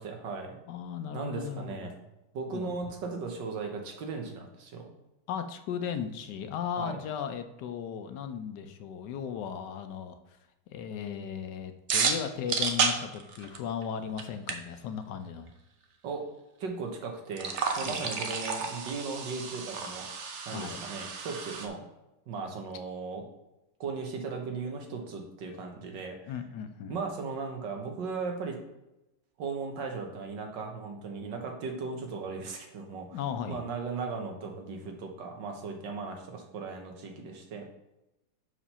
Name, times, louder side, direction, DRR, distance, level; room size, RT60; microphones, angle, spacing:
voice 1, 0.0-0.6 1.1-1.9 2.3-4.9 6.8-7.0 16.0-16.2 16.6-21.9 22.3-23.2 23.8-26.3 26.9-28.6 29.4-33.2 33.5-37.6, right 4 dB, 75° right, 3 dB, 1.7 m, -37 dB
voice 2, 0.7-1.9 2.5-2.8 5.3-10.4 10.7-15.5 17.8-18.1 20.5-20.8 26.3-27.0 33.1-33.6, left 8 dB, 75° left, 8 dB, 1.2 m, -36 dB
sound 1, 11.9-13.8 14.2-14.3 14.5-14.6 17.3-21.7, right 5 dB, 55° right, 0.8 m, -31 dB
5.9 x 5.0 x 5.5 m, 0.95 s
omnidirectional pair, 2.0 m